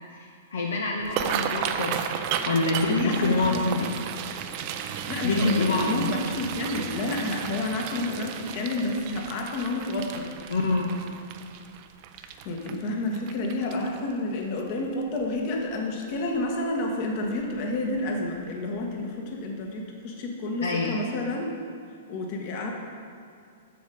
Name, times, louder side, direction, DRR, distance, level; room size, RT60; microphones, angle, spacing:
voice 1, 0.1-2.0 2.5-3.9 5.2-6.1 10.5-10.9 20.6-20.9, left 3 dB, 70° left, 0 dB, 0.8 m, -26 dB
sound 1, 1.0-14.1 14.6-14.9 15.2-15.6 16.0-16.2 17.4-17.6 17.9-18.1 18.5-18.6, right 8 dB, 45° right, 0.5 m, -34 dB
voice 2, 2.9-3.6 5.1-10.4 12.2-21.5 22.1-22.7, left 2 dB, 45° left, 1 dB, 1.5 m, -30 dB
7.8 x 6.7 x 5.1 m, 2.3 s
figure-of-eight pair, 110°, 0 cm